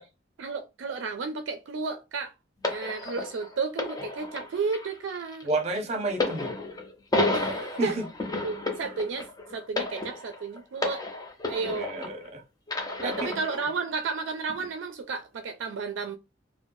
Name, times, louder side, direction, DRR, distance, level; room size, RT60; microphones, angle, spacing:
voice 1, 0.4-2.3 2.7-5.5 7.3-8.0 8.4-11.0 11.5-11.9 13.0-16.2, right 4 dB, 75° right, 0.4 m, -32 dB
sound 1, 2.6-12.3 12.7-13.7 14.5-14.7, left 2 dB, 20° left, 0.5 m, -32 dB
voice 2, 5.4-6.5 7.8-8.0 11.8-12.4 13.0-13.3, right 2 dB, 35° right, 0.7 m, -30 dB
3.1 x 2.0 x 2.5 m
head